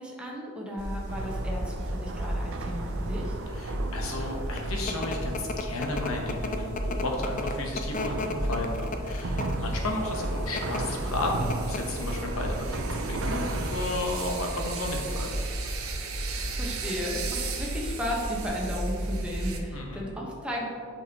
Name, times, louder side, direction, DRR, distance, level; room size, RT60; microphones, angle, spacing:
voice 1, 0.0-3.4 16.2-20.7, equal, 5° right, -3 dB, 1.1 m, -35 dB
sound 1, 0.8-19.6, right 1 dB, 90° right, 0.9 m, -34 dB
sound 2, 1.1-14.5, right 2 dB, 65° right, 0.6 m, -37 dB
voice 2, 3.5-15.3 19.7-20.0, left 2 dB, 85° left, 1 dB, 1.1 m, -33 dB
sound 3, 4.3-19.5, left 3 dB, 40° left, 0.4 m, -38 dB
8.1 x 5.8 x 3.0 m, 2.2 s
head